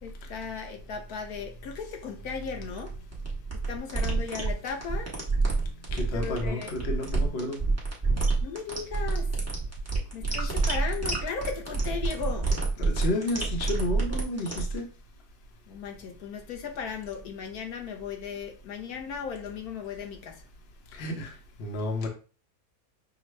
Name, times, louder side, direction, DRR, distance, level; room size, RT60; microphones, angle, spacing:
voice 1, 0.0-2.9 3.7-5.1 6.1-6.8 8.4-9.4 10.1-12.5 15.7-20.5, left 6 dB, 90° left, 1.3 m, -36 dB
sound 1, 2.5-14.8, right 3 dB, 10° right, 0.9 m, -28 dB
voice 2, 5.9-7.6 10.4-10.5 12.8-14.9 20.9-21.3 21.6-22.1, left 2 dB, 50° left, 1.0 m, -31 dB
6.1 x 2.2 x 3.2 m
omnidirectional pair, 1.6 m